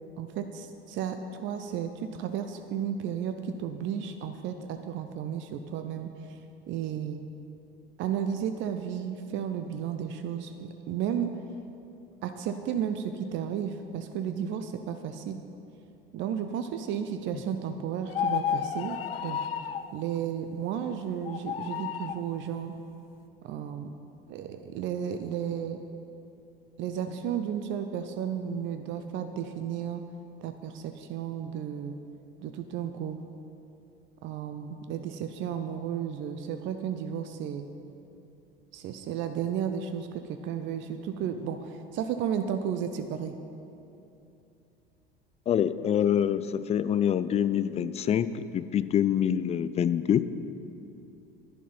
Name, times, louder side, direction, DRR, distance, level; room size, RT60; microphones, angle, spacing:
voice 1, 0.2-6.1 6.7-7.2 8.0-11.4 12.2-15.4 16.1-19.4 19.9-22.7 23.4-23.9 24.3-25.8 26.8-30.0 30.4-32.0 32.4-33.2 34.2-37.6 38.7-43.3, right 8 dB, 40° right, 8 dB, 0.7 m, -33 dB
sound 1, 18.1-19.9 21.2-22.2, left 8 dB, 80° left, 0.5 m, -31 dB
voice 2, 45.5-50.3, left 9 dB, 20° left, 14 dB, 0.4 m, -26 dB
11.0 x 11.0 x 5.7 m, 2.8 s
figure-of-eight pair, 70°, 29 cm